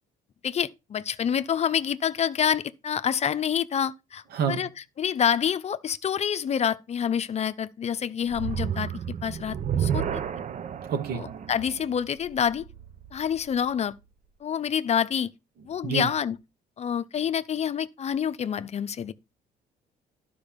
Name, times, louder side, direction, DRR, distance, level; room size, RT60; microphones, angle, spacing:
voice 1, 0.4-4.7 5.0-8.9 9.2-10.0 11.1-12.6 13.1-13.9 14.4-15.3 15.6-16.4 16.8-19.1, left 8 dB, 40° left, 0.8 m, -27 dB
voice 2, 4.3-4.6 10.9-11.2 15.8-16.1, right 8 dB, 70° right, 2.6 m, -27 dB
sound 1, 8.3-13.6, right 8 dB, 45° right, 0.9 m, -32 dB
12.0 x 5.1 x 5.3 m
cardioid pair, 110°, 17 cm